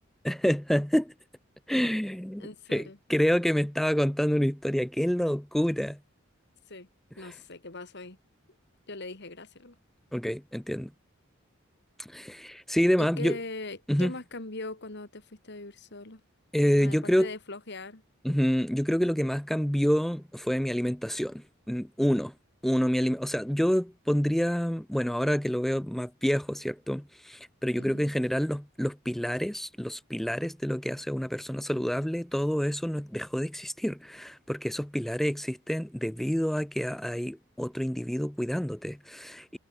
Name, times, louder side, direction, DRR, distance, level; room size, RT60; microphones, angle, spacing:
voice 1, 0.2-1.1 1.7-6.0 7.2-7.3 10.1-10.9 12.0-13.4 13.9-14.1 16.5-17.3 18.2-22.3 22.6-39.6, equal, ahead, 0.3 m, -28 dB
voice 2, 2.4-3.0 6.7-6.9 7.1-8.2 8.9-9.8 13.0-16.2 16.8-18.0 27.8-28.1, left 2 dB, 60° left, 2.9 m, -40 dB
head